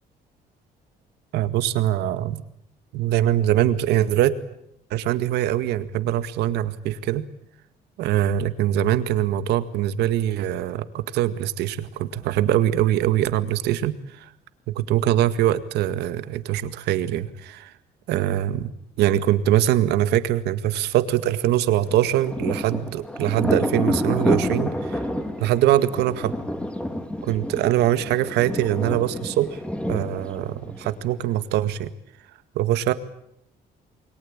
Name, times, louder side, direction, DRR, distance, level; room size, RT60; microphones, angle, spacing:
voice 1, 1.3-2.4 2.9-4.4 4.9-7.2 8.0-14.0 14.7-17.7 18.1-18.7 19.0-25.0 25.4-26.3 27.3-29.6 29.9-31.9 32.6-32.9, right 12 dB, 85° right, 12 dB, 2.0 m, -23 dB
Thunder, 21.8-31.3, left 1 dB, 5° left, 3.4 m, -29 dB
29.0 x 22.0 x 8.9 m, 0.76 s
cardioid pair, 110°, 17 cm